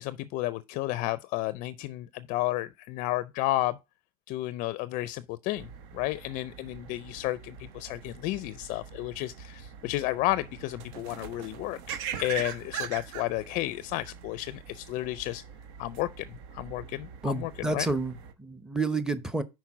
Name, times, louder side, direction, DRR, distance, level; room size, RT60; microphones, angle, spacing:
voice 1, 0.0-3.8 4.3-15.4 15.8-17.9, left 17 dB, 50° left, 0.4 m, -32 dB
sound 1, 5.5-18.3, right 7 dB, 65° right, 1.0 m, -42 dB
voice 2, 17.2-19.4, right 3 dB, 5° right, 0.8 m, -30 dB
5.8 x 4.5 x 5.9 m
supercardioid pair, 110°, 17 cm